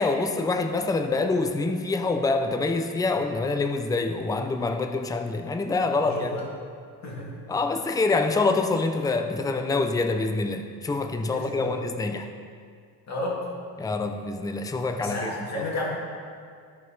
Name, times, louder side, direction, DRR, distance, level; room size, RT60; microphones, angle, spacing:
voice 1, 0.0-6.3 7.5-12.3 13.8-15.6, left 3 dB, 10° left, 6 dB, 0.5 m, -26 dB
voice 2, 6.0-6.5 7.0-7.3 11.2-11.8 13.1-13.5 15.0-15.9, left 2 dB, 45° left, -4 dB, 2.2 m, -32 dB
14.0 x 4.8 x 4.1 m, 2.2 s
cardioid pair, 125°, 38 cm